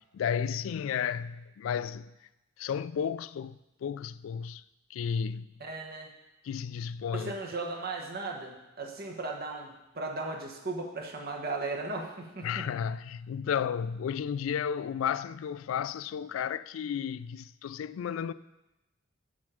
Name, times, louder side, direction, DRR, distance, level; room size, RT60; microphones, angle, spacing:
voice 1, 0.1-2.1 2.6-4.6 4.9-5.5 6.4-7.3 12.4-18.3, left 7 dB, 80° left, 0.3 m, -33 dB
voice 2, 5.6-6.1 7.1-12.7, right 3 dB, 50° right, 1.2 m, -36 dB
7.5 x 7.4 x 4.9 m
head